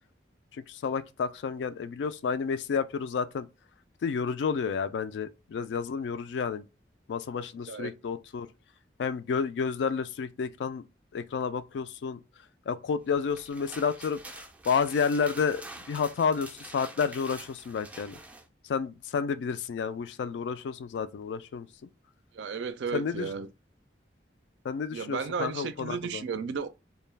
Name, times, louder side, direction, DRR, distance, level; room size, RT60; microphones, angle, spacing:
voice 1, 0.7-3.5 4.0-6.7 7.1-8.5 9.0-10.8 11.1-12.2 12.7-15.6 15.9-18.2 18.7-21.7 22.9-23.3 24.6-26.2, left 6 dB, 75° left, 0.3 m, -30 dB
sound 1, 13.1-18.5, right 2 dB, 10° right, 0.3 m, -46 dB
voice 2, 22.3-23.5 24.9-26.7, right 6 dB, 85° right, 0.4 m, -34 dB
2.3 x 2.1 x 3.2 m
head